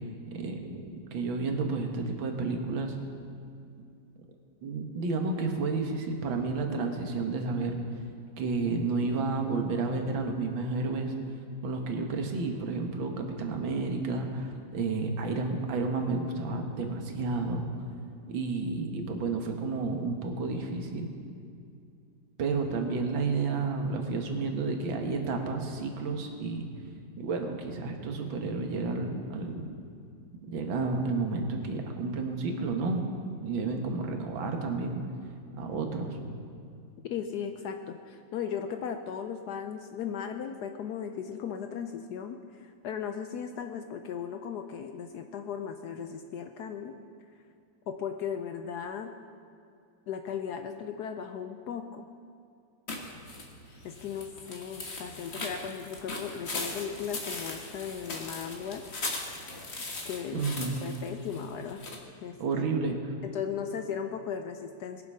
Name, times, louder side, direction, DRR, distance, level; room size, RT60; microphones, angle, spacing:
voice 1, 0.3-3.0 4.6-7.8 8.4-11.1 11.6-17.7 18.3-21.1 22.4-26.7 27.2-29.7 30.5-33.1 33.4-35.0 35.5-36.2 60.3-60.9 62.4-63.1, right 3 dB, 85° right, 4 dB, 2.0 m, -31 dB
voice 2, 37.0-46.9 47.9-49.1 50.1-52.1 53.8-58.8 60.0-60.4 60.8-61.8 62.2-62.7 63.3-65.0, left 7 dB, 70° left, 6 dB, 1.0 m, -37 dB
sound 1, 52.9-62.0, left 2 dB, 35° left, 1.5 m, -39 dB
20.5 x 7.2 x 5.5 m, 2.4 s
omnidirectional pair, 2.1 m